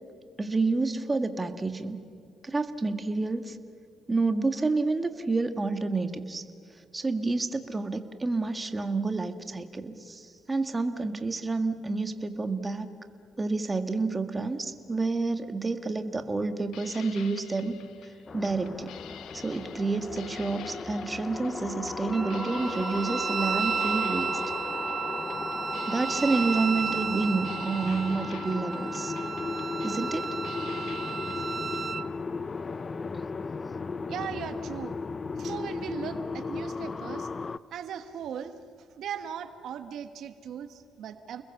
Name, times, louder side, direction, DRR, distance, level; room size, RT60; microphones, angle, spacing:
voice 1, 0.4-2.0 2.4-3.6 4.1-6.4 6.9-12.9 13.4-17.8 18.3-18.9 19.3-24.4 25.9-29.1 29.8-30.3, right 3 dB, 25° right, 8 dB, 1.8 m, -29 dB
sound 1, 16.6-31.9, left 10 dB, 85° left, 1.3 m, -49 dB
sound 2, 18.3-37.6, left 4 dB, 35° left, 0.7 m, -36 dB
Wind instrument woodwind instrument, 22.1-32.1, right 6 dB, 45° right, 1.0 m, -33 dB
voice 2, 34.1-35.0 35.4-37.3 37.7-41.4, right 8 dB, 75° right, 9 dB, 1.3 m, -38 dB
30.0 x 21.5 x 7.1 m, 2.3 s
cardioid pair, 90°, 0 cm